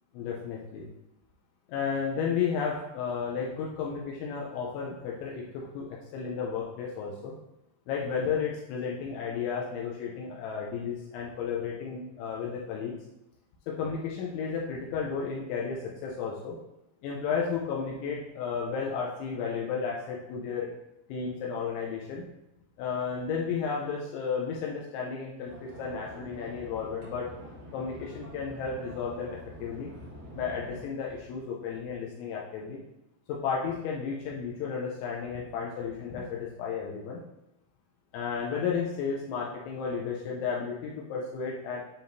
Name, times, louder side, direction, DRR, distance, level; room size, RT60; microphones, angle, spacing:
voice 1, 0.1-0.9 1.7-7.3 7.9-12.9 13.7-16.6 17.0-20.7 21.1-22.2 22.8-27.3 27.7-29.9 30.3-32.8 33.3-37.2 38.1-41.8, left 6 dB, 80° left, -3 dB, 2.9 m, -33 dB
sound 1, 25.4-30.8, right 1 dB, 50° right, 2.9 m, -46 dB
10.0 x 3.5 x 2.6 m, 0.89 s
omnidirectional pair, 5.5 m